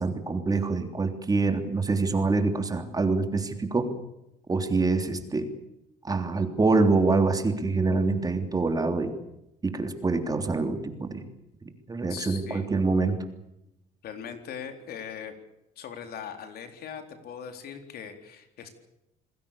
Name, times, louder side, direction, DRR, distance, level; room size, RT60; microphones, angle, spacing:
voice 1, 0.0-3.9 4.5-5.5 6.0-9.1 9.6-11.2 11.9-13.2, right 3 dB, 20° right, 7 dB, 3.3 m, -25 dB
voice 2, 12.1-12.7 14.0-15.3 15.8-18.7, left 7 dB, 65° left, 7 dB, 4.0 m, -40 dB
28.0 x 20.0 x 7.0 m, 0.86 s
cardioid pair, 110°, 17 cm